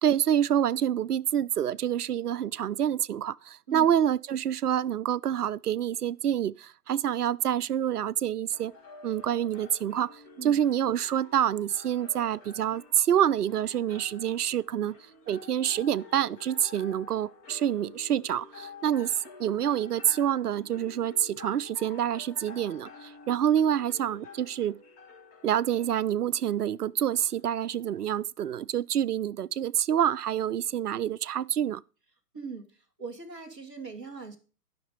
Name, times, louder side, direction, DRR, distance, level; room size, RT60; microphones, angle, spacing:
voice 1, 0.0-8.7 9.0-15.0 15.3-19.1 19.4-24.8 25.4-31.8, right 10 dB, 70° right, 0.5 m, -27 dB
sound 1, 8.5-28.1, left 4 dB, 25° left, 1.6 m, -50 dB
voice 2, 32.3-32.7 33.0-34.4, right 5 dB, 5° right, 0.4 m, -40 dB
12.0 x 6.0 x 5.1 m
figure-of-eight pair, 125°, 47 cm